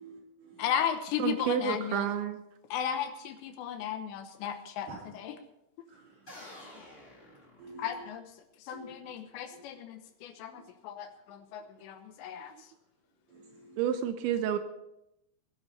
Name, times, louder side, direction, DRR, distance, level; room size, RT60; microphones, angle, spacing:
voice 1, 0.0-0.7 4.9-5.0 5.9-6.7 7.6-8.0 8.7-8.9 9.5-9.6 10.5-10.6 13.3-13.8, right 3 dB, 50° right, -3 dB, 6.0 m, -50 dB
voice 2, 0.6-2.1 2.7-4.9 5.1-5.3 7.8-8.2 8.7-12.5, left 9 dB, 75° left, 7 dB, 3.0 m, -35 dB
voice 3, 1.2-2.4 12.5-12.6 13.8-14.6, right 9 dB, 80° right, 8 dB, 3.0 m, -30 dB
sound 1, 6.3-8.2, left 1 dB, 15° left, 3.0 m, -50 dB
20.5 x 12.0 x 4.2 m, 0.84 s
omnidirectional pair, 5.5 m